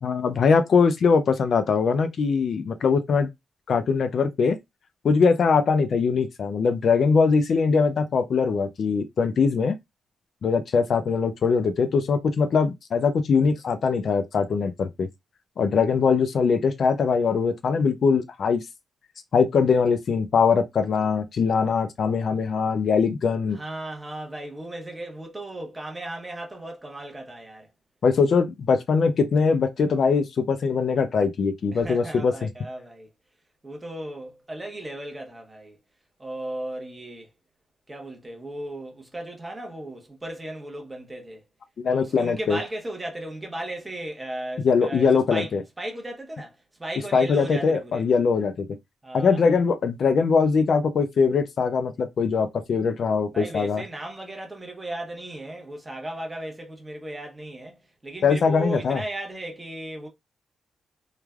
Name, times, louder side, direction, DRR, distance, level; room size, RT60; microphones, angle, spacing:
voice 1, 0.0-3.3 3.7-4.6 5.0-9.8 10.4-15.1 15.6-18.6 19.3-23.6 28.0-32.5 41.8-42.6 44.6-45.6 47.1-48.7 49.1-53.8 58.2-59.0, left 5 dB, 55° left, 0.3 m, -22 dB
voice 2, 23.5-27.7 31.7-33.1 33.6-35.8 36.2-37.3 37.9-41.4 41.9-48.0 49.0-49.5 53.3-60.1, right 1 dB, 15° right, 0.8 m, -36 dB
3.2 x 2.2 x 2.3 m
wide cardioid pair, 130°, 0 cm